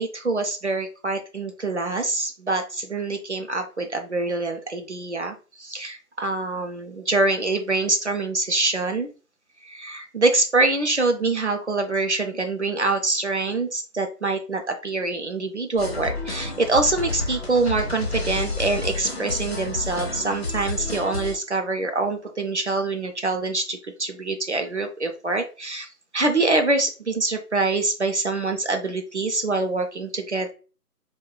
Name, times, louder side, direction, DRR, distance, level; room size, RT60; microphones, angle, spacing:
voice 1, 0.0-9.1 9.6-25.9 26.1-30.5, right 3 dB, 50° right, 5 dB, 0.4 m, -25 dB
sound 1, 15.8-21.4, left 3 dB, 45° left, 0.5 m, -30 dB
2.4 x 2.2 x 3.6 m, 0.35 s
figure-of-eight pair, 160°, 46 cm